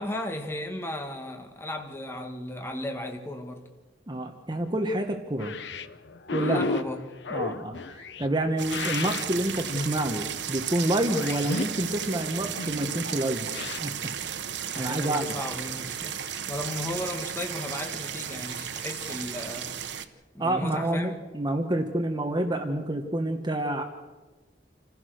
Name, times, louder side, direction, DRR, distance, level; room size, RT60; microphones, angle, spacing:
voice 1, 0.0-3.6 6.4-7.1 14.7-20.1 20.3-21.1, left 1 dB, 15° left, 1.7 m, -35 dB
voice 2, 4.1-5.5 6.3-6.6 7.3-13.9 14.7-15.3 20.4-23.8, right 1 dB, 25° right, 1.2 m, -28 dB
sound 1, 5.4-13.8, left 3 dB, 80° left, 0.9 m, -34 dB
sound 2, 8.6-20.0, right 9 dB, 85° right, 1.0 m, -34 dB
27.5 x 15.5 x 6.5 m
head